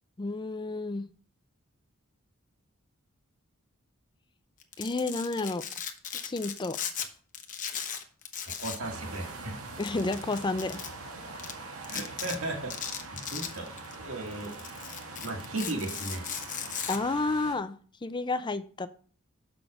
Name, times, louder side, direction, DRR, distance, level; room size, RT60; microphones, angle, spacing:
voice 1, 0.2-1.1 4.8-5.6 6.2-6.8 9.8-10.8 16.9-17.7 18.0-18.9, left 3 dB, 20° left, 11 dB, 0.4 m, -30 dB
Domestic sounds home sounds, 4.6-7.1 7.3-8.9 9.1-9.3 9.8-10.9 11.4-11.5 11.8-12.4 12.7-13.9 14.3-17.0, left 8 dB, 35° left, 0.9 m, -37 dB
voice 2, 8.6-9.6 11.9-12.7 13.3-14.5 15.2-16.2, right 2 dB, 70° right, 1 dB, 2.1 m, -35 dB
sound 1, 8.8-17.6, right 3 dB, 85° right, 1.6 m, -43 dB
6.5 x 6.1 x 4.8 m, 0.43 s
head